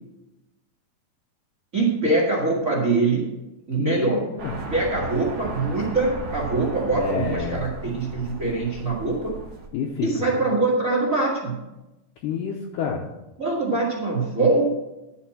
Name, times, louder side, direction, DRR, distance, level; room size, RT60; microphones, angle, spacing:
voice 1, 1.7-3.3 3.7-4.2 4.7-9.3 10.0-11.6 13.4-14.7, right 3 dB, 45° right, -3 dB, 1.0 m, -23 dB
voice 2, 3.8-4.6 7.0-7.6 9.7-10.2 12.2-13.0, left 6 dB, 75° left, -1 dB, 2.2 m, -29 dB
sound 1, 4.4-9.7, right 3 dB, 70° right, 0.9 m, -35 dB
11.5 x 4.3 x 7.5 m, 0.98 s
omnidirectional pair, 4.4 m